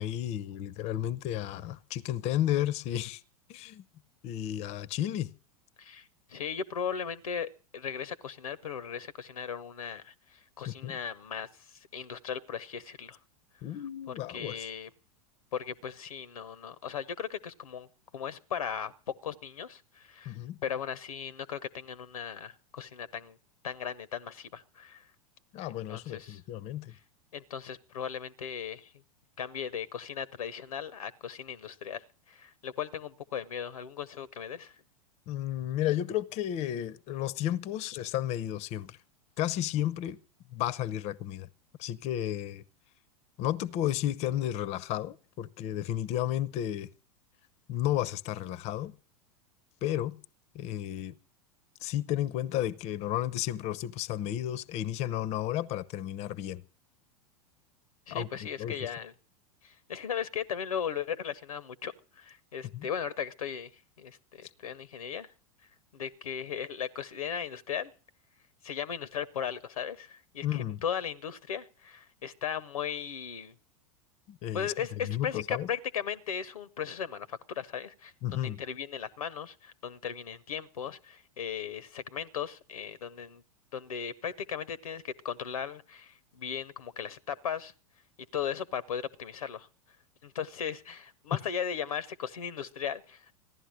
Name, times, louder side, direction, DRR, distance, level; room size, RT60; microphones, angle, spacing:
voice 1, 0.0-3.2 3.5-3.8 4.2-5.3 10.7-11.0 13.6-14.7 20.3-20.6 25.5-27.0 35.3-39.0 39.4-40.2 40.5-41.5 41.8-42.6 43.4-46.9 47.7-48.9 49.8-50.2 50.5-51.1 51.8-56.6 58.1-58.9 62.7-62.9 70.4-70.8 74.3-74.7 75.0-75.7 78.2-78.6, left 12 dB, 35° left, 0.7 m, -32 dB
voice 2, 5.8-13.2 14.1-14.9 15.5-17.9 18.1-23.4 23.6-25.0 25.9-26.4 27.3-28.9 29.4-32.0 32.3-34.7 58.1-59.1 59.6-63.7 64.0-65.3 65.9-67.9 68.6-73.5 74.5-83.4 83.7-87.7 88.3-89.7 90.2-93.4, left 8 dB, 70° left, 0.8 m, -37 dB
15.5 x 11.5 x 6.3 m
figure-of-eight pair, 90°, 19 cm